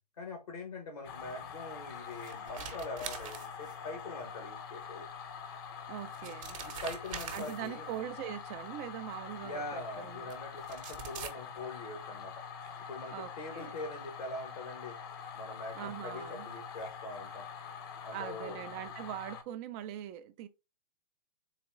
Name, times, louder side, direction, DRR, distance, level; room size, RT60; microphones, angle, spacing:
voice 1, 0.2-5.1 6.2-6.3 6.6-7.9 9.4-12.4 12.9-15.0 15.3-17.5 18.0-18.6, left 2 dB, 70° left, 1.3 m, -43 dB
sound 1, 1.0-19.4, left 6 dB, 35° left, 0.7 m, -45 dB
sound 2, 1.9-4.0 5.4-5.5 6.0-7.9 9.1-9.2 10.3-10.4 10.6-11.3, right 7 dB, 55° right, 0.9 m, -44 dB
voice 2, 5.9-6.6 7.3-10.3 13.1-13.7 15.8-16.5 18.1-20.5, right 11 dB, 25° right, 0.3 m, -42 dB
4.0 x 2.9 x 3.5 m
figure-of-eight pair, 120°, 20 cm